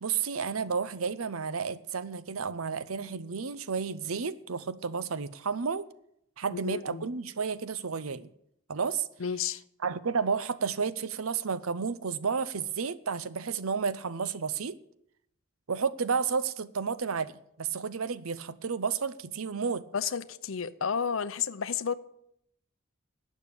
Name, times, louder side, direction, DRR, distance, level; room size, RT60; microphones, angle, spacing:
voice 1, 0.0-5.9 6.4-8.3 8.7-9.1 9.8-14.7 15.7-19.8, right 5 dB, 85° right, 16 dB, 0.7 m, -31 dB
voice 2, 6.5-7.0 9.2-9.6 19.9-21.9, left 7 dB, 70° left, 15 dB, 0.7 m, -31 dB
12.0 x 8.4 x 8.5 m, 0.74 s
head